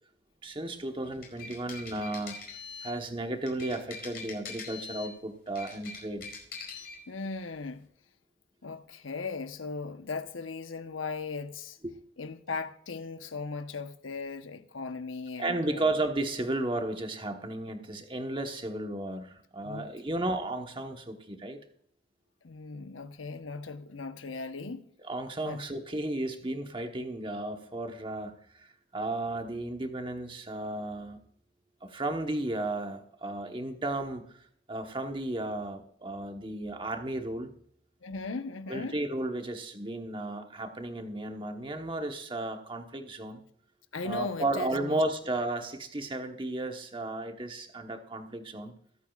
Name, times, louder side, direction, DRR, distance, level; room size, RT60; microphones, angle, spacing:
voice 1, 0.4-2.4 2.8-6.3 11.8-12.0 15.4-21.6 25.1-31.2 31.8-37.5 38.7-43.4 44.0-48.7, right 2 dB, 25° right, 1.1 m, -34 dB
sound 1, 1.0-3.0 3.5-5.1 5.5-7.0, left 4 dB, 50° left, 5.0 m, -43 dB
voice 2, 7.1-7.9 8.6-11.8 12.2-16.0 19.6-19.9 22.4-24.9 25.4-25.6 38.0-39.0 43.9-45.0, left 4 dB, 90° left, 1.0 m, -38 dB
23.0 x 8.5 x 2.4 m
head